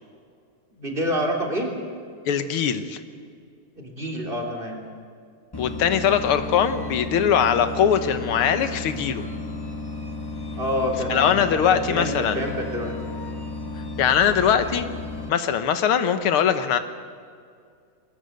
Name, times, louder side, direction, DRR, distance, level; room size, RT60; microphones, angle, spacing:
voice 1, 0.8-1.7 3.8-4.8 10.5-12.9 14.2-14.4, equal, 25° right, 1 dB, 3.5 m, -27 dB
voice 2, 2.3-3.0 5.6-9.2 11.1-12.4 14.0-14.9 15.3-16.8, left 8 dB, 90° left, 9 dB, 2.0 m, -21 dB
sound 1, 5.5-15.3, left 2 dB, 20° left, 0.7 m, -33 dB
22.0 x 19.5 x 8.0 m, 2.3 s
omnidirectional pair, 2.3 m